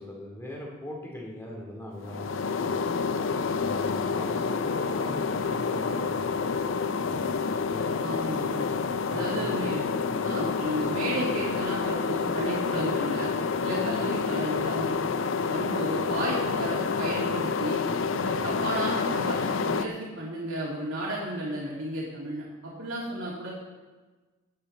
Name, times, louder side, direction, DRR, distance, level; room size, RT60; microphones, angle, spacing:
voice 1, 0.0-3.0 3.5-7.4 7.7-8.0 9.1-9.7 10.1-10.3 18.4-18.6, left 1 dB, 15° left, -2 dB, 2.6 m, -41 dB
sound 1, 2.0-19.9, left 5 dB, 70° left, 0.5 m, -28 dB
voice 2, 8.0-8.7 9.1-9.8 10.2-13.3 13.6-15.0 15.5-17.8 18.1-23.5, right 1 dB, 85° right, -6 dB, 2.6 m, -33 dB
16.5 x 9.4 x 4.2 m, 1.3 s
head